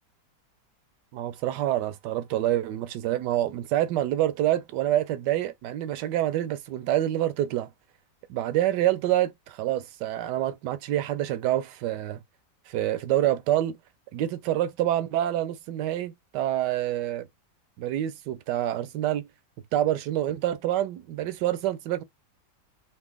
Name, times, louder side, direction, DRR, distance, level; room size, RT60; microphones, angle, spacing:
voice 1, 1.1-7.7 8.3-12.2 12.7-13.8 14.1-17.3 17.8-19.3 19.7-22.0, right 13 dB, 75° right, 1.2 m, -27 dB
6.0 x 2.1 x 3.3 m
omnidirectional pair, 1.9 m